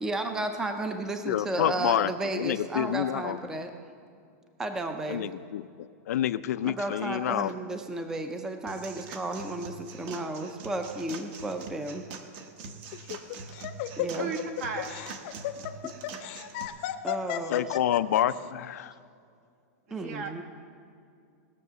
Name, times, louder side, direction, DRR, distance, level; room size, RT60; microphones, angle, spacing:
voice 1, 0.0-3.7 4.6-5.3 6.6-12.0 14.0-14.3 15.8-15.9 17.0-17.8 19.9-20.4, right 2 dB, 5° right, 6 dB, 0.5 m, -33 dB
voice 2, 1.2-2.1 2.3-3.4 5.1-5.6 6.1-7.5 17.5-18.9, left 11 dB, 80° left, 14 dB, 0.5 m, -28 dB
sound 1, 8.7-16.7, right 5 dB, 40° right, 1.0 m, -44 dB
Laughter, 12.9-18.4, left 13 dB, 45° left, 0.7 m, -34 dB
voice 3, 14.2-15.0 19.9-20.4, right 4 dB, 65° right, 2 dB, 2.0 m, -35 dB
19.0 x 6.6 x 6.8 m, 2.4 s
supercardioid pair, 165°, 8 cm